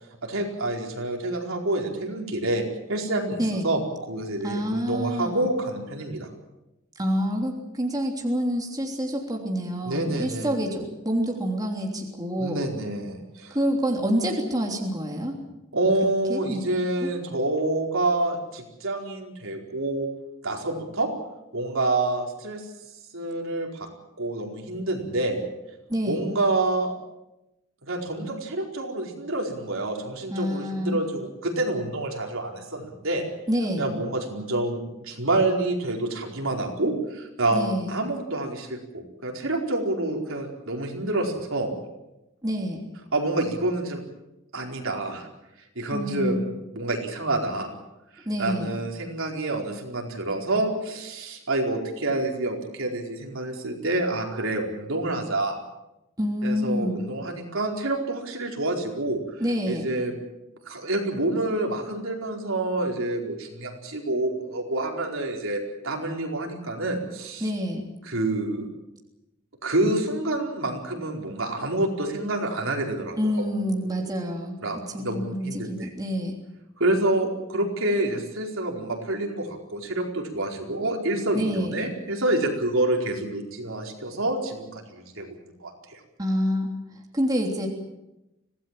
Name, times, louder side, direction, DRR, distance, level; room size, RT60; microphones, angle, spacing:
voice 1, 0.2-2.6 2.9-3.8 4.1-6.3 9.8-10.5 12.4-13.6 15.7-20.1 20.4-21.1 21.5-22.6 23.1-23.9 24.2-25.4 26.1-26.9 27.9-33.3 33.8-41.7 43.1-44.0 44.5-45.3 45.7-46.4 46.7-47.7 48.2-55.6 56.4-59.2 59.7-60.2 60.7-67.5 68.0-68.7 69.6-73.2 73.8-74.2 74.6-75.9 76.8-86.0, right 2 dB, 70° right, 1 dB, 4.6 m, -28 dB
voice 2, 4.4-5.5 7.0-12.6 13.5-15.4 16.3-16.6 17.0-17.1 25.9-26.2 30.3-31.0 33.5-33.9 37.5-37.9 42.4-42.8 45.9-46.4 48.2-48.7 56.2-57.1 59.4-59.9 67.4-67.9 73.2-74.6 74.9-76.4 81.3-81.7 86.2-86.7 87.1-87.7, equal, 20° right, 0 dB, 3.2 m, -27 dB
25.5 x 17.5 x 7.6 m, 0.93 s
head